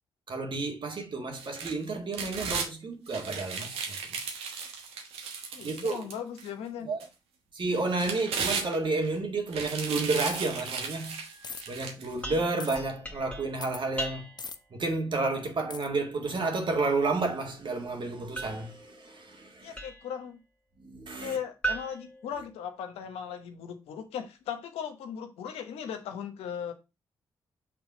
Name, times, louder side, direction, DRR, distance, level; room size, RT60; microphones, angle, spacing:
voice 1, 0.3-4.0 5.6-6.0 6.8-7.1 7.5-14.3 14.7-19.8 20.8-21.4, right 3 dB, 55° right, 1.8 m, -31 dB
sound 1, 1.3-2.7 3.1-6.5 7.0-7.1 7.7-9.1 9.5-12.1 12.6-12.7, right 5 dB, 80° right, 1.1 m, -35 dB
voice 2, 5.5-6.9 19.6-20.4 21.2-26.7, left 8 dB, 80° left, 0.9 m, -38 dB
sound 2, 10.3-10.6 11.4-11.6 12.6-12.8 13.6-13.8 14.4-14.6 15.7-15.9, left 5 dB, 45° left, 0.7 m, -40 dB
sound 3, 12.2-14.6 18.4-20.2 21.6-23.1, right 2 dB, 15° left, 1.7 m, -39 dB
6.2 x 3.4 x 5.0 m
hypercardioid pair, 45°, 10 cm